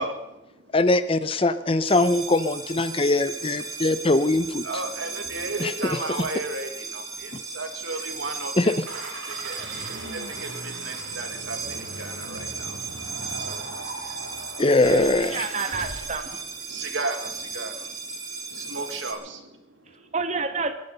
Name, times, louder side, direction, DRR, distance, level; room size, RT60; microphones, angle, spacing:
voice 1, 0.0-0.8 2.9-4.0 4.6-9.7 10.1-15.5 16.3-20.1, right 2 dB, 70° right, 7 dB, 1.9 m, -36 dB
voice 2, 0.7-4.6 5.6-5.7 8.6-8.7 14.6-15.4, left 2 dB, 30° left, 13 dB, 0.6 m, -21 dB
sound 1, 1.8-19.1, right 5 dB, 20° right, 2.0 m, -36 dB
sound 2, 8.9-16.4, right 2 dB, 85° right, 2.4 m, -39 dB
voice 3, 15.3-16.4 20.1-20.7, right 4 dB, 35° right, 7 dB, 1.3 m, -29 dB
21.5 x 10.5 x 5.5 m, 0.89 s
head